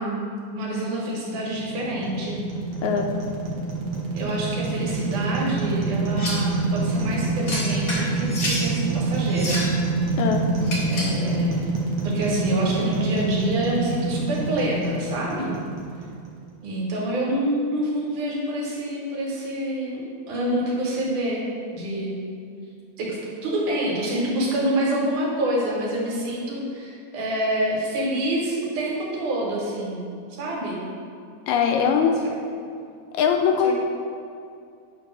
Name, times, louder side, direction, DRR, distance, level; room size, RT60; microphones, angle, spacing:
voice 1, 0.0-2.4 4.1-9.6 10.8-11.7 12.0-15.5 16.6-21.4 21.7-22.2 23.0-30.0 30.3-30.8 32.2-32.3 33.6-33.7, right 1 dB, 90° right, -4 dB, 2.9 m, -27 dB
sound 1, 1.3-16.5, right 3 dB, 65° right, 2.1 m, -27 dB
sound 2, 6.2-6.5 7.5-8.7 9.3-9.8 10.6-11.2, left 1 dB, 50° left, 1.1 m, -29 dB
voice 2, 31.5-32.2 33.1-33.7, left 7 dB, 80° left, 3 dB, 1.8 m, -21 dB
8.6 x 2.9 x 5.9 m, 2.4 s
omnidirectional pair, 3.4 m